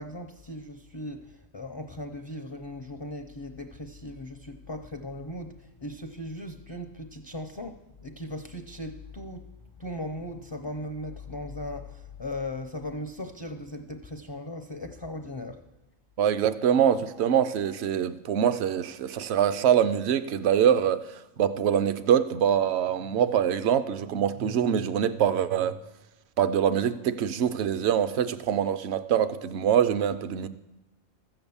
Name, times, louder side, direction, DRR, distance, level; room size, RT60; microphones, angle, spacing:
voice 1, 0.0-9.5 9.8-15.6, left 1 dB, 35° left, 0.4 m, -38 dB
voice 2, 16.2-21.0 21.4-25.7 26.4-30.5, right 9 dB, 60° right, 0.8 m, -24 dB
13.5 x 7.9 x 7.0 m
omnidirectional pair, 1.4 m